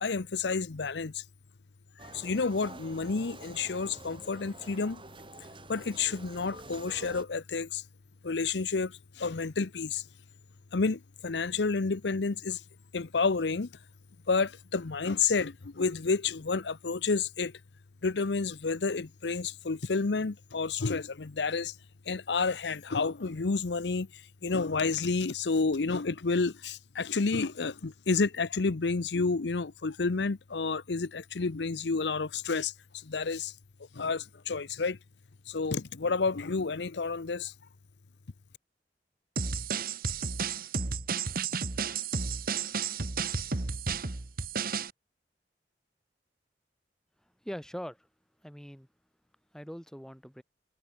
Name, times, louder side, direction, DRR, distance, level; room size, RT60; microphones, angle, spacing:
voice 1, 0.0-1.2 2.0-5.0 5.7-7.8 8.2-10.1 10.7-12.6 12.9-13.7 14.3-17.5 18.0-21.8 22.1-33.5 33.9-35.0 35.5-37.5, left 4 dB, 75° left, 0.7 m, -30 dB
sound 1, 2.0-7.2, right 2 dB, 30° right, 7.1 m, -48 dB
sound 2, 39.4-44.9, right 5 dB, 55° right, 1.4 m, -32 dB
voice 2, 47.4-48.1 48.4-48.9 49.5-50.4, equal, 5° left, 4.8 m, -42 dB
head